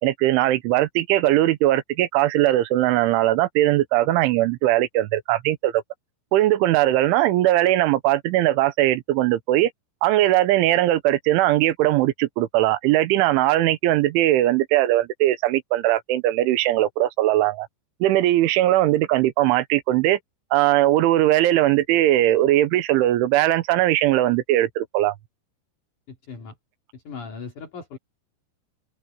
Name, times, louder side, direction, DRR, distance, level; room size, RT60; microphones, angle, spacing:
voice 1, 0.0-5.8 6.3-9.7 10.0-17.7 18.0-20.2 20.5-25.1, right 15 dB, 80° right, 3.4 m, -20 dB
voice 2, 26.1-26.5 26.9-28.0, left 5 dB, 45° left, 4.0 m, -38 dB
omnidirectional pair, 5.5 m